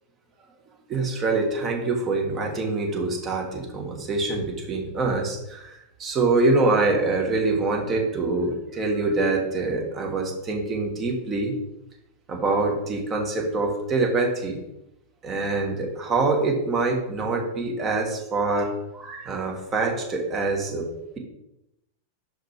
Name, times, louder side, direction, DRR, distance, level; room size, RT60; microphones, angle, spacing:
voice 1, 0.9-5.7 6.0-11.5 12.3-14.6 15.2-20.8, right 3 dB, 25° right, 1 dB, 1.3 m, -25 dB
4.9 x 4.3 x 4.4 m, 0.87 s
figure-of-eight pair, 90°, 0 cm